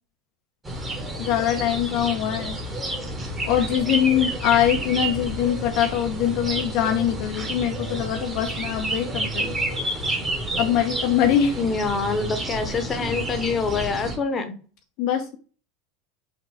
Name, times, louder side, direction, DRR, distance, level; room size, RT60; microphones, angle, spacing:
sound 1, 0.6-14.2, right 1 dB, 20° right, 1.4 m, -30 dB
voice 1, 1.2-2.6 3.4-9.5 10.6-11.6 15.0-15.4, left 10 dB, 55° left, 4 dB, 0.6 m, -23 dB
voice 2, 11.6-14.5, left 4 dB, 30° left, 8 dB, 0.9 m, -25 dB
5.5 x 2.5 x 3.3 m, 0.38 s
hypercardioid pair, 85°, 0 cm